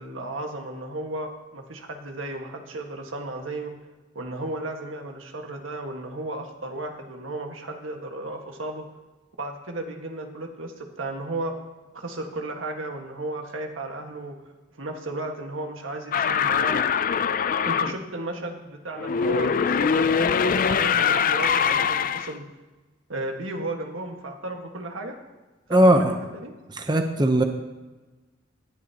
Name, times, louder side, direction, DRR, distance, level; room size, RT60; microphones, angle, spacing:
voice 1, 0.0-3.7 4.1-8.8 9.4-11.5 11.9-14.3 14.8-16.7 17.6-22.4 23.1-25.2 25.7-26.5, right 2 dB, 85° right, 3 dB, 1.7 m, -34 dB
sound 1, 16.1-18.0 19.0-22.3, left 6 dB, 45° left, 0.4 m, -23 dB
voice 2, 25.7-26.1 26.8-27.4, right 1 dB, 20° right, 5 dB, 0.8 m, -18 dB
18.5 x 10.5 x 2.9 m, 1.2 s
head